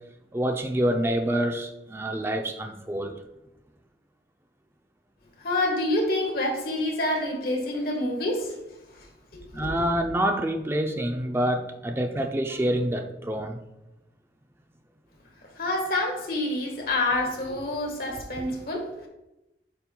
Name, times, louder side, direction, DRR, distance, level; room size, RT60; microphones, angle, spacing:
voice 1, 0.3-3.2 9.5-13.6, right 1 dB, 15° right, 5 dB, 0.4 m, -27 dB
voice 2, 5.4-8.5 8.9-9.1 9.3-9.7 15.6-19.1, left 1 dB, 55° left, 1 dB, 1.4 m, -27 dB
8.9 x 5.4 x 2.2 m, 0.96 s
head